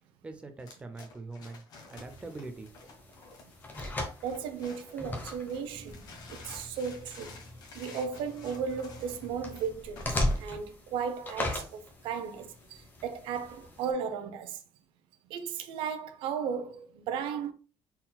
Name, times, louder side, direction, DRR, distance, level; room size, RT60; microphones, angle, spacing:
voice 1, 0.2-2.7, right 3 dB, 15° right, 0.5 m, -43 dB
sound 1, 0.6-5.1 5.5-10.5, left 4 dB, 50° left, 1.2 m, -51 dB
sound 2, 2.0-13.9, left 1 dB, 20° left, 0.9 m, -38 dB
voice 2, 4.2-6.0 6.3-7.3 7.7-14.6 15.3-17.5, right 6 dB, 80° right, 0.7 m, -35 dB
4.2 x 3.8 x 2.2 m
cardioid pair, 165°, 9 cm